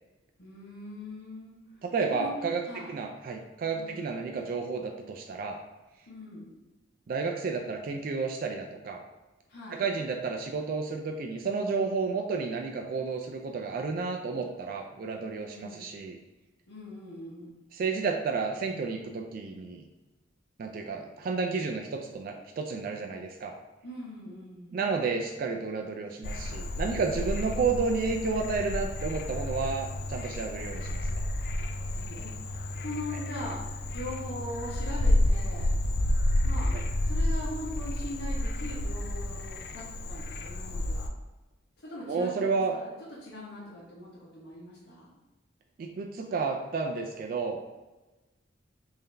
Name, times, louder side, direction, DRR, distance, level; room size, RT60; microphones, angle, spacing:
voice 1, 0.4-1.6 2.1-2.3 2.6-2.9 3.7-4.1 6.1-6.5 9.5-9.8 15.5-15.8 16.7-17.6 23.8-24.8 31.9-33.6 33.9-35.8 36.4-36.7 37.0-41.0 41.8-42.9 43.2-45.1, left 1 dB, 90° left, -9 dB, 1.0 m, -41 dB
voice 2, 1.8-5.6 7.1-9.0 9.7-16.2 17.7-19.8 20.6-23.5 24.7-31.2 36.7-36.8 42.1-42.8 45.8-47.6, right 4 dB, 50° right, 3 dB, 0.3 m, -31 dB
Frog, 26.2-41.1, left 1 dB, 55° left, 0.3 m, -30 dB
3.7 x 2.6 x 3.3 m, 1.1 s
head